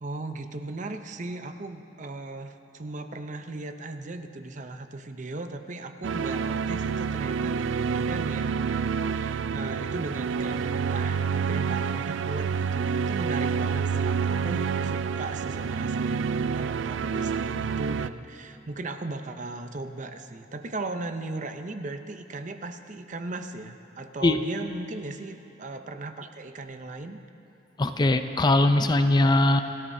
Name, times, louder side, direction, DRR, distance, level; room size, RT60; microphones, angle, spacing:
voice 1, 0.0-27.2, right 2 dB, 40° right, 7 dB, 0.6 m, -37 dB
sound 1, 6.0-18.1, right 6 dB, 80° right, 0.3 m, -28 dB
voice 2, 27.8-29.6, left 2 dB, 25° left, 8 dB, 0.5 m, -21 dB
28.0 x 13.5 x 2.7 m, 2.8 s
head